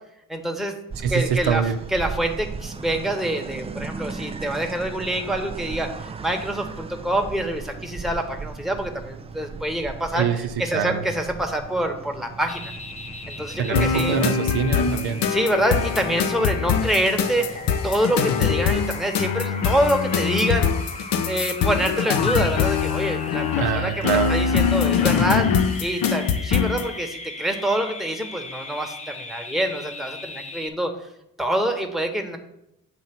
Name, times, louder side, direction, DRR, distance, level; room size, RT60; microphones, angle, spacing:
voice 1, 0.3-0.7 1.1-1.6 1.9-12.6 13.3-14.2 15.3-20.7 21.0-23.5 23.7-30.9 31.4-32.4, right 1 dB, ahead, 3 dB, 1.0 m, -26 dB
sound 1, 0.9-18.8, right 5 dB, 15° right, 0.3 m, -38 dB
voice 2, 1.0-1.8 10.1-10.4 10.7-11.1 13.6-15.2 23.6-24.4, right 7 dB, 70° right, 6 dB, 0.7 m, -24 dB
sound 2, 12.5-30.7, left 2 dB, 20° left, 0.7 m, -38 dB
sound 3, 13.7-26.9, left 7 dB, 60° left, 0.7 m, -23 dB
8.0 x 2.7 x 5.8 m, 0.82 s
supercardioid pair, 55°, 39 cm